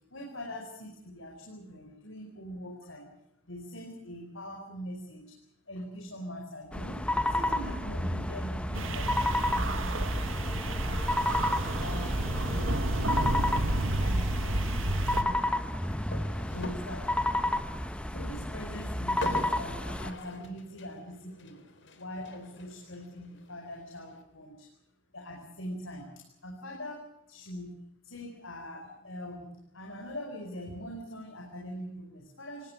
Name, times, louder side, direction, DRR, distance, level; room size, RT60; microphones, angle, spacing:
voice 1, 0.1-3.1 3.4-5.4 5.7-7.0 7.3-12.1 12.5-16.0 16.4-17.1 18.1-21.6 21.9-24.7 25.1-27.7 28.0-32.7, equal, 90° left, 1 dB, 4.8 m, -43 dB
sound 1, 6.7-20.1, left 1 dB, 5° left, 1.2 m, -31 dB
sound 2, 8.7-15.2, right 1 dB, 85° right, 1.7 m, -30 dB
sound 3, 11.3-24.2, left 2 dB, 70° left, 3.7 m, -46 dB
25.5 x 19.0 x 8.6 m, 0.79 s
head